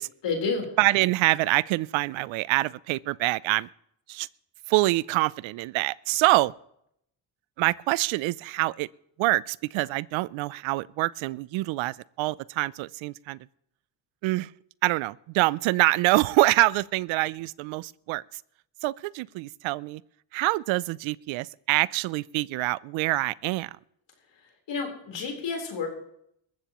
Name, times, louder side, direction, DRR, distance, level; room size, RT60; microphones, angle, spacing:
voice 1, 0.2-0.7 24.3-25.9, left 4 dB, 70° left, 4.0 m, -30 dB
voice 2, 0.8-3.7 4.1-4.3 4.7-6.5 7.6-8.9 9.2-13.4 14.2-14.5 14.8-18.2 18.8-20.0 20.3-23.8, right 20 dB, 85° right, 0.5 m, -25 dB
21.0 x 14.5 x 3.0 m
cardioid pair, 80°, 45 cm